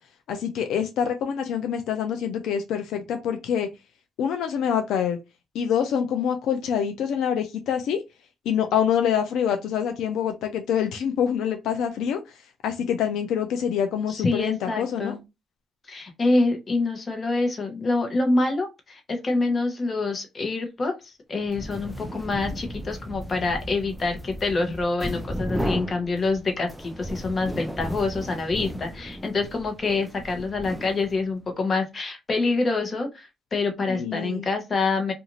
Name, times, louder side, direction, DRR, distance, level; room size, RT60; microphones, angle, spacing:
voice 1, 0.3-3.7 4.2-5.2 5.5-8.0 8.5-15.2 33.9-34.5, left 8 dB, 85° left, 0.4 m, -26 dB
voice 2, 14.1-15.2 15.9-35.1, left 3 dB, 40° left, 0.8 m, -26 dB
sound 1, 21.4-31.4, equal, 5° right, 0.4 m, -35 dB
2.6 x 2.4 x 2.9 m
cardioid pair, 90°, 0 cm